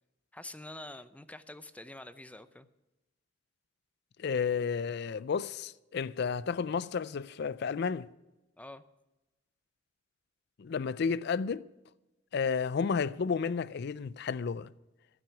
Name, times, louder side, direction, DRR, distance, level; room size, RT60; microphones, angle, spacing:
voice 1, 0.3-2.7 8.6-8.8, left 1 dB, 5° left, 0.6 m, -46 dB
voice 2, 4.2-8.1 10.6-11.7 12.3-14.7, left 6 dB, 60° left, 0.4 m, -32 dB
14.5 x 6.2 x 9.7 m
head